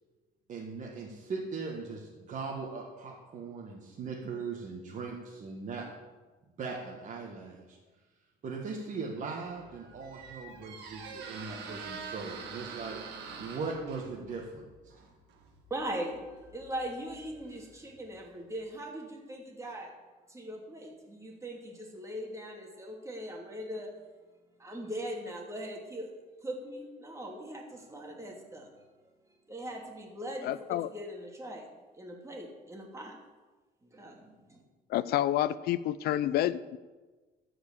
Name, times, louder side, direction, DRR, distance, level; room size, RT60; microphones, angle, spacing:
voice 1, 0.5-5.8 6.6-7.8 8.4-13.0 13.4-14.6, right 4 dB, 50° right, -2 dB, 1.8 m, -39 dB
Squeak, 9.5-18.2, right 5 dB, 85° right, 1.8 m, -46 dB
voice 2, 15.7-19.9 20.3-23.9 24.6-26.1 26.4-28.7 29.5-31.7 31.9-33.2 33.8-34.6, right 1 dB, 15° right, 0 dB, 2.7 m, -40 dB
voice 3, 30.4-30.9 34.9-36.8, left 13 dB, 70° left, 15 dB, 0.5 m, -29 dB
13.5 x 5.1 x 8.4 m, 1.3 s
cardioid pair, 110°, 17 cm